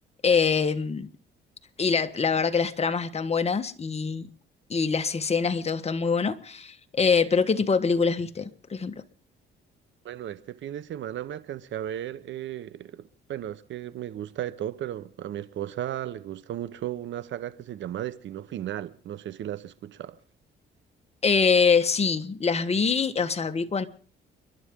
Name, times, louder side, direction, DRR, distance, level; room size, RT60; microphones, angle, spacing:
voice 1, 0.2-1.1 1.8-4.3 4.7-9.0 21.2-23.9, left 5 dB, 30° left, 1.4 m, -24 dB
voice 2, 10.0-20.2, right 11 dB, 70° right, 1.1 m, -35 dB
30.0 x 11.5 x 3.8 m
cardioid pair, 90°, 20 cm